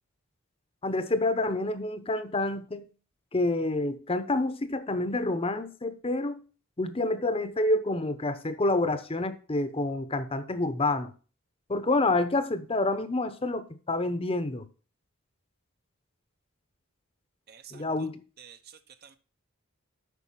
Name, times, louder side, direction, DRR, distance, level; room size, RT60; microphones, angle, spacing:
voice 1, 0.8-2.9 3.3-6.4 6.8-11.1 11.7-14.7 17.7-18.2, left 2 dB, 25° left, 0.9 m, -28 dB
voice 2, 17.5-18.1 18.4-19.2, right 8 dB, 50° right, 0.9 m, -51 dB
8.4 x 5.8 x 5.7 m
head